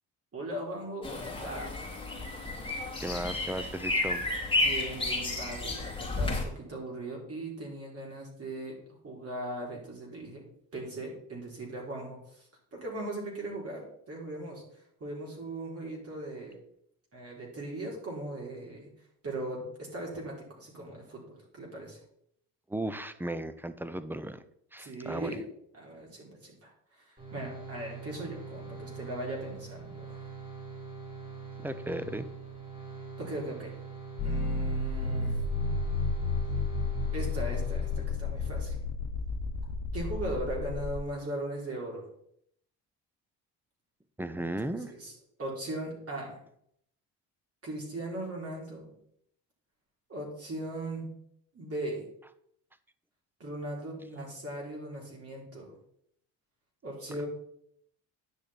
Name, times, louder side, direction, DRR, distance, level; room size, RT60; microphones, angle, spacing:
voice 1, 0.3-1.7 4.6-10.4 10.7-16.6 17.1-18.9 19.2-22.0 24.8-25.5 25.7-30.2 33.2-33.7 34.2-35.4 37.1-38.8 39.9-42.1 44.3-46.4 47.6-48.9 50.1-51.1 51.5-52.1 53.4-55.7 56.8-57.3, right 1 dB, 40° right, -2 dB, 4.0 m, -39 dB
sound 1, 1.0-6.4, left 2 dB, 15° left, 2.6 m, -32 dB
voice 2, 3.0-4.3 22.7-24.4 24.7-25.4 31.6-32.3 44.2-44.9, right 1 dB, 5° right, 13 dB, 0.7 m, -35 dB
sound 2, 27.2-38.5, right 5 dB, 20° right, 3.8 m, -44 dB
sound 3, 34.2-41.0, left 3 dB, 50° left, 1.1 m, -32 dB
10.0 x 6.4 x 4.4 m, 0.70 s
cardioid pair, 90°, 37 cm